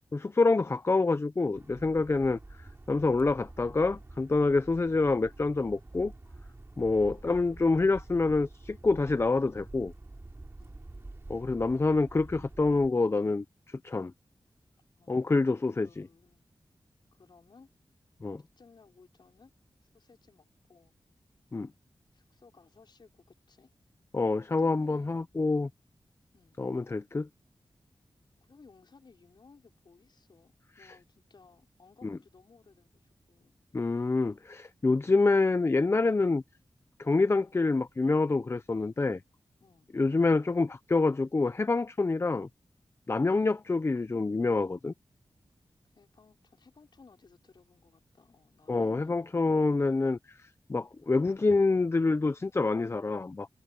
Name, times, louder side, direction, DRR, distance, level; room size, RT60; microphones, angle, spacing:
voice 1, 0.1-2.4 2.9-6.1 6.8-9.9 11.3-14.1 15.1-16.1 18.2-18.4 21.5-21.7 24.1-25.7 26.6-27.3 32.0-32.2 33.7-36.4 37.0-39.2 39.9-42.5 43.1-44.9 48.7-50.2 50.7-53.5, left 3 dB, 30° left, 0.6 m, -27 dB
sound 1, 1.5-12.9, right 2 dB, 25° right, 7.0 m, -48 dB
voice 2, 15.0-15.4 15.8-16.5 17.1-17.7 18.6-19.5 19.8-20.9 22.1-23.7 24.6-25.2 26.3-26.6 28.4-33.6 39.6-39.9 45.9-49.2, left 4 dB, 60° left, 5.3 m, -59 dB
wide cardioid pair, 110°, 9 cm